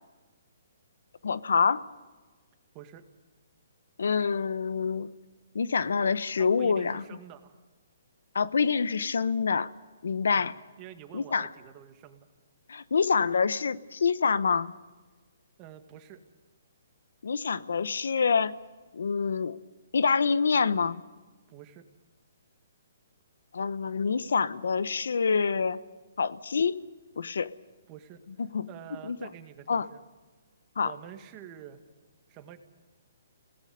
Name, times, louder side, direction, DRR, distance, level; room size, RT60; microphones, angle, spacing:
voice 1, 1.2-1.8 4.0-5.1 5.5-7.0 8.3-9.7 10.0-10.5 11.1-11.5 12.7-14.7 17.2-18.5 18.9-19.6 19.9-21.0 23.5-25.8 26.2-26.8 27.2-27.5 28.4-28.7 29.0-29.2 29.7-29.9 30.8-30.9, left 5 dB, 80° left, 16 dB, 1.0 m, -26 dB
voice 2, 6.4-7.6 10.3-10.5 10.8-12.3 15.6-16.2 21.5-21.8 27.9-28.2 28.7-30.0 30.8-31.8 32.3-32.6, right 10 dB, 25° right, 7 dB, 2.0 m, -47 dB
29.5 x 18.5 x 5.3 m, 1.3 s
hypercardioid pair, 155°, 0 cm